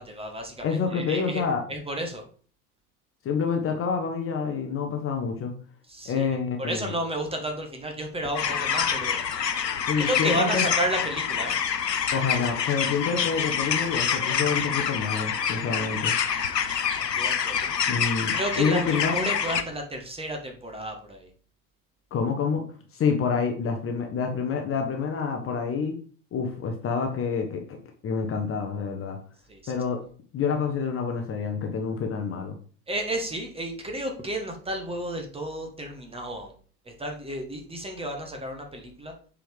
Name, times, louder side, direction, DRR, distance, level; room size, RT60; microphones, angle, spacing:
voice 1, 0.0-0.6 0.9-1.4 1.7-2.2 5.9-6.3 6.6-9.2 10.0-11.6 16.3-16.8 17.2-17.7 18.3-21.3 29.5-29.7 32.9-36.5 36.9-39.1, right 1 dB, 10° right, 3 dB, 1.5 m, -32 dB
voice 2, 0.6-1.6 3.2-5.5 6.0-6.9 9.9-10.7 12.1-16.1 17.9-19.3 22.1-22.6 22.9-26.0 26.3-27.8 28.0-29.2 29.7-30.0 30.3-32.5, left 5 dB, 25° left, 4 dB, 1.1 m, -27 dB
sound 1, 8.3-19.6, left 7 dB, 85° left, 0.7 m, -27 dB
7.4 x 5.0 x 3.5 m, 0.43 s
figure-of-eight pair, 80°, 48 cm